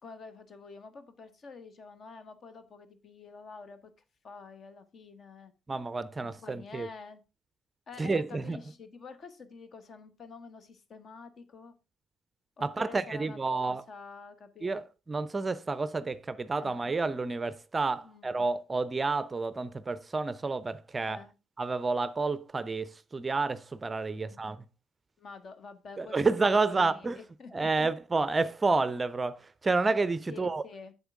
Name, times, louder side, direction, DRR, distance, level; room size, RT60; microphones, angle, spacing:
voice 1, 0.0-3.9 4.2-5.5 6.2-7.2 7.9-11.7 12.6-14.8 16.6-16.7 18.0-18.3 21.0-21.3 24.1-24.5 25.2-26.2 26.4-27.9 30.3-30.9, left 4 dB, 45° left, 1.3 m, -48 dB
voice 2, 5.7-6.9 8.0-8.6 12.6-13.8 14.6-21.2 21.6-24.6 26.0-27.2 27.5-30.6, right 3 dB, 25° right, 0.5 m, -30 dB
7.9 x 7.1 x 3.6 m
figure-of-eight pair, 50°, 0 cm